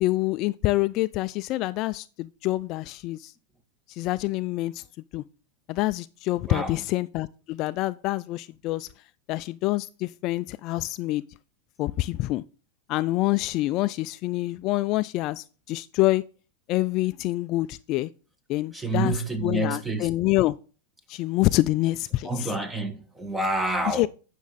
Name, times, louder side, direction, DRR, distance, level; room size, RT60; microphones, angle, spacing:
voice 1, 0.0-3.3 3.9-4.8 5.1-5.2 5.7-8.9 9.3-11.2 11.8-12.4 12.9-16.2 16.7-18.1 18.5-20.6 21.1-22.5 23.9-24.1, left 18 dB, 45° left, 0.3 m, -26 dB
voice 2, 6.5-6.8 18.7-20.1 22.2-24.1, right 2 dB, 5° right, 1.3 m, -28 dB
9.4 x 6.3 x 4.1 m
hypercardioid pair, 125°, 0 cm